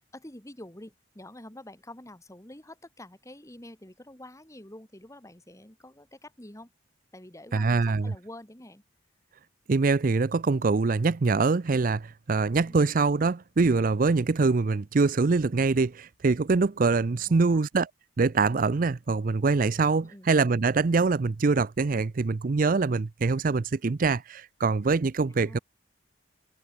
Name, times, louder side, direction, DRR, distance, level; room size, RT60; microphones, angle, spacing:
voice 1, 0.1-6.7 7.1-8.8 12.6-12.8 17.1-17.6 20.0-20.3 25.3-25.6, left 1 dB, 15° left, 2.7 m, -47 dB
voice 2, 7.5-8.1 9.7-17.9 18.2-25.6, right 4 dB, 45° right, 0.5 m, -24 dB
head